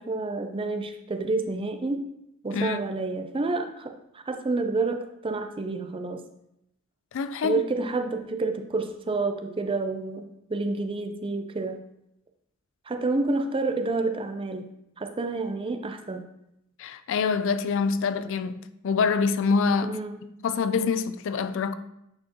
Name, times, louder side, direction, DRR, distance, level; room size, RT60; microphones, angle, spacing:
voice 1, 0.0-2.0 2.4-6.2 7.4-10.2 10.5-11.8 12.9-14.7 15.0-16.3 19.8-20.2, right 3 dB, 25° right, 0.5 m, -29 dB
voice 2, 7.1-7.6 16.8-18.6 18.8-20.0 20.4-21.7, left 5 dB, 60° left, 0.4 m, -25 dB
8.6 x 4.3 x 2.9 m
head